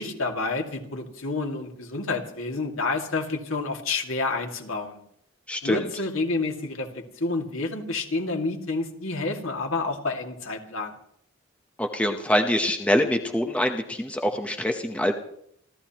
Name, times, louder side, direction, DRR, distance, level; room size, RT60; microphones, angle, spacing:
voice 1, 0.0-5.0 5.6-10.9, left 3 dB, 80° left, 2 dB, 2.4 m, -29 dB
voice 2, 5.5-5.8 11.8-15.1, equal, 5° left, 4 dB, 0.9 m, -24 dB
28.0 x 13.5 x 3.0 m, 0.68 s
head